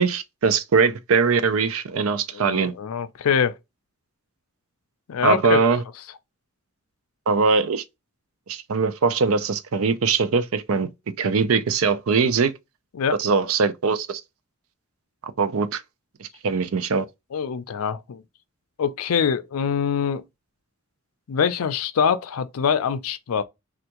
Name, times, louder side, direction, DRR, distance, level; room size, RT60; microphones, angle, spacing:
voice 1, 0.0-2.7 5.2-5.8 7.3-7.8 8.5-10.9 11.2-12.5 13.2-14.2 15.4-15.8 16.2-17.0, right 5 dB, 75° right, 0.5 m, -21 dB
voice 2, 2.3-3.5 5.1-5.6 12.9-13.2 17.3-18.2 18.8-20.2 21.3-23.4, left 7 dB, 85° left, 0.4 m, -24 dB
3.4 x 2.4 x 2.8 m
head